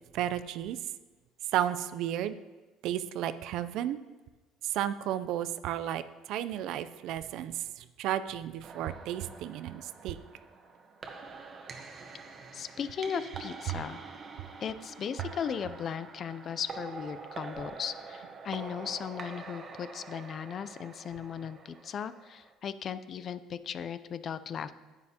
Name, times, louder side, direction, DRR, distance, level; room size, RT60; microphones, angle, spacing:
voice 1, 0.1-0.8 1.5-2.4 2.8-4.0 4.6-6.0 6.3-10.2 13.7-13.8, right 11 dB, 70° right, 13 dB, 0.4 m, -33 dB
sound 1, 8.6-22.5, right 4 dB, 35° right, 1.0 m, -46 dB
voice 2, 12.5-14.0 14.6-24.7, left 7 dB, 40° left, 14 dB, 0.4 m, -37 dB
9.6 x 9.6 x 2.8 m, 1.2 s
cardioid pair, 130°, 0 cm